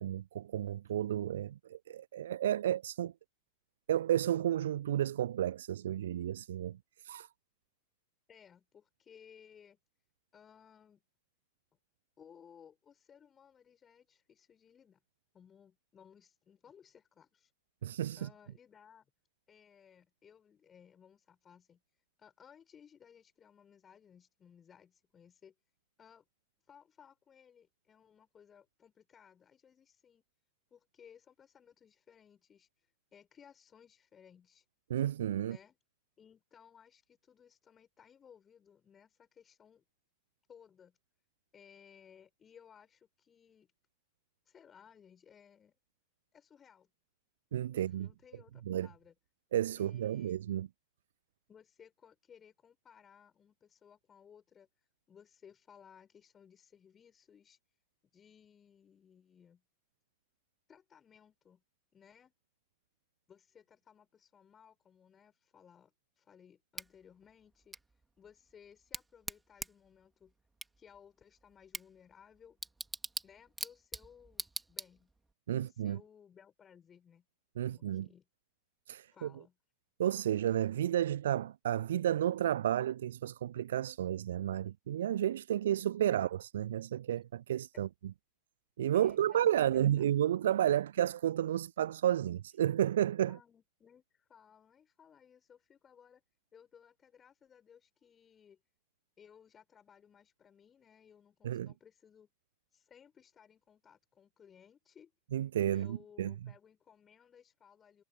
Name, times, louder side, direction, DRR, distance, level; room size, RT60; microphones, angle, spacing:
voice 1, 0.0-3.1 3.9-6.8 7.0-7.3 17.8-18.3 34.9-35.6 47.5-48.1 48.7-48.9 49.5-50.7 75.5-76.0 77.6-78.1 78.9-79.3 80.0-87.9 88.8-93.4 101.4-101.7 105.3-106.3, right 11 dB, 60° right, 0.6 m, -32 dB
voice 2, 8.3-9.8 10.3-11.0 12.2-15.0 15.3-17.5 18.1-19.1 19.5-21.8 22.2-25.5 26.0-26.2 26.7-30.2 30.7-34.6 35.4-35.8 36.2-39.8 40.5-41.0 41.5-43.7 44.4-45.8 46.3-46.9 47.7-49.1 49.8-50.4 51.5-57.6 58.1-59.6 60.7-61.6 61.9-62.3 63.3-67.8 68.2-70.3 70.8-72.6 73.2-75.1 75.6-77.2 77.7-78.3 79.1-79.5 87.7-87.9 88.9-90.0 93.2-96.2 96.5-98.6 99.2-102.3 102.7-105.1 105.7-108.0, left 7 dB, 20° left, 6.6 m, -60 dB
Bicycle / Tick, 66.7-75.3, right 3 dB, 10° right, 2.8 m, -45 dB
figure-of-eight pair, 90°, 0 cm